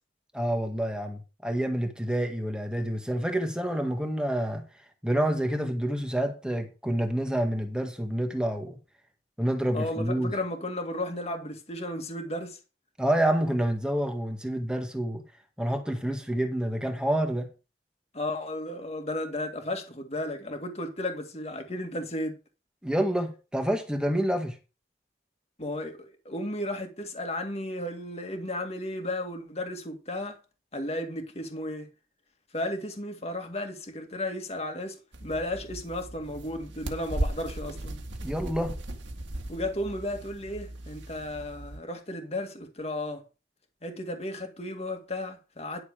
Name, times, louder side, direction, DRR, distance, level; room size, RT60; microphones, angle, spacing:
voice 1, 0.3-4.6 5.0-8.8 9.4-10.3 13.0-15.2 15.6-17.5 22.8-24.6 38.2-38.7, right 1 dB, 5° right, 1.7 m, -28 dB
voice 2, 9.7-12.6 18.1-22.4 25.6-30.4 30.7-31.9 32.5-38.0 39.5-43.2 43.8-45.8, left 1 dB, 35° left, 2.0 m, -34 dB
sound 1, 35.1-41.8, right 1 dB, 85° right, 1.8 m, -37 dB
11.0 x 6.9 x 4.9 m
head